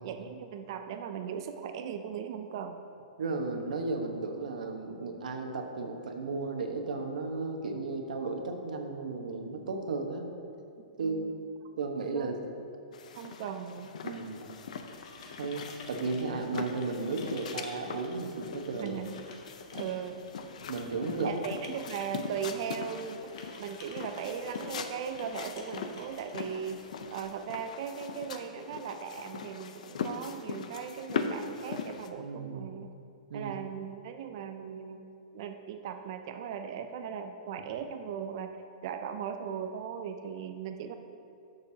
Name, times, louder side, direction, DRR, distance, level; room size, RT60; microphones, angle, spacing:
voice 1, 0.0-2.8 10.9-11.3 12.1-12.3 13.1-13.9 18.8-19.1 19.7-20.3 21.2-23.3 23.6-32.9 33.3-35.0 35.3-38.6 38.8-40.9, right 7 dB, 35° right, 7 dB, 0.4 m, -38 dB
voice 2, 3.2-10.3 11.0-11.3 11.8-12.4 14.0-14.4 15.4-19.0 20.7-21.3 32.2-32.7 33.3-33.5, right 3 dB, 75° right, 3 dB, 1.1 m, -34 dB
sound 1, 12.9-32.1, left 6 dB, 60° left, 0.6 m, -41 dB
sound 2, 14.5-27.2, left 3 dB, 40° left, 1.0 m, -53 dB
12.5 x 6.7 x 2.8 m, 2.6 s
hypercardioid pair, 170°, 4 cm